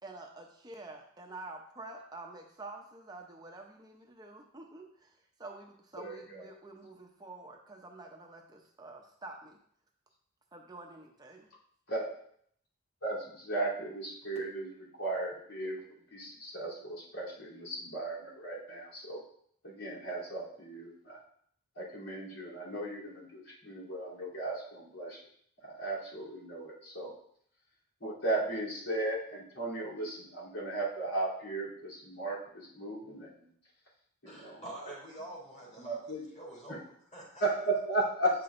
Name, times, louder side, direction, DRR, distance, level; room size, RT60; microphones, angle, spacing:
voice 1, 0.0-9.6 10.5-11.5, right 2 dB, 20° right, 2 dB, 0.7 m, -48 dB
voice 2, 6.0-6.4 11.9-12.1 13.0-15.8 16.1-19.2 19.6-21.2 21.8-25.2 25.6-27.1 28.0-33.4 34.2-34.6 35.8-36.2 37.4-38.3, right 2 dB, 85° left, -7 dB, 3.2 m, -36 dB
voice 3, 34.2-37.5, right 1 dB, 35° left, -6 dB, 3.3 m, -47 dB
9.5 x 6.0 x 2.6 m, 0.65 s
head